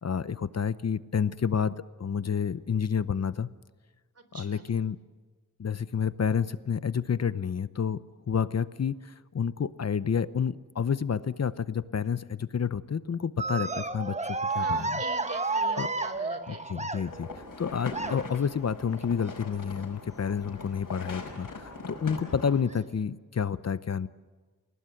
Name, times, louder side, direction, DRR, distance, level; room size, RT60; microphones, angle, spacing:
voice 1, 0.0-3.5 4.3-5.0 5.6-8.0 8.3-14.8 15.8-15.9 16.5-17.3 17.6-24.1, left 7 dB, 55° left, 15 dB, 0.8 m, -29 dB
voice 2, 4.2-4.7 14.5-16.7, right 3 dB, 50° right, 10 dB, 3.5 m, -42 dB
sound 1, 13.4-17.4 17.9-18.5 19.5-19.8 20.3-20.4 21.7-21.8 22.6-22.7, right 3 dB, 20° right, 1.2 m, -31 dB
sound 2, 17.0-22.6, left 3 dB, 85° left, 5.4 m, -41 dB
29.5 x 18.5 x 7.8 m, 1.4 s
wide cardioid pair, 110°, 32 cm